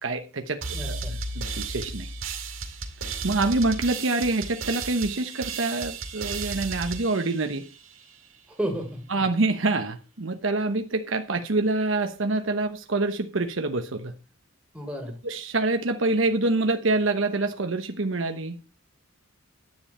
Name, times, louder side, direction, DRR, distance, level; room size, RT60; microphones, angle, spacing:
voice 1, 0.0-1.0 1.3-2.1 3.2-7.7 9.1-14.1 15.2-18.6, right 2 dB, 75° right, 1.0 m, -26 dB
sound 1, 0.6-8.1, right 4 dB, 90° right, 2.2 m, -34 dB
voice 2, 0.7-1.1 8.5-9.0 14.7-15.2, right 1 dB, 5° right, 3.3 m, -32 dB
10.0 x 9.4 x 4.3 m
head